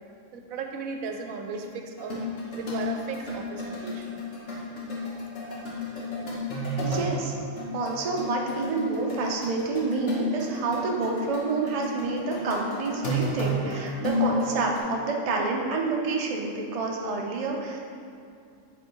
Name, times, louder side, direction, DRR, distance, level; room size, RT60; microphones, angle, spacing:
voice 1, 0.3-2.2 2.5-4.2, right 4 dB, 90° right, 4 dB, 1.1 m, -36 dB
sound 1, 2.0-7.2 7.6-14.8, left 1 dB, 60° left, 1.4 m, -32 dB
voice 2, 6.8-7.3 7.7-17.8, right 3 dB, 40° right, -1 dB, 0.5 m, -28 dB
7.7 x 3.5 x 4.6 m, 2.4 s
omnidirectional pair, 1.4 m